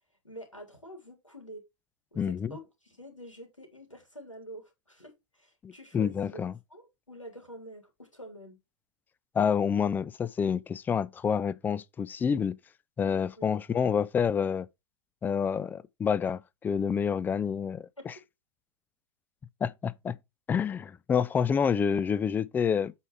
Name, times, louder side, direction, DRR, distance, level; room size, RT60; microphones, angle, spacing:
voice 1, 0.2-1.6 2.1-6.4 6.7-8.6 13.4-13.5 18.0-18.1, right 1 dB, 90° left, 3.5 m, -47 dB
voice 2, 2.2-2.6 5.6-6.5 9.3-12.6 13.0-14.7 15.2-18.1 19.6-20.2 20.5-22.9, left 7 dB, 10° left, 0.4 m, -28 dB
8.3 x 4.7 x 4.7 m
figure-of-eight pair, 100°, 16 cm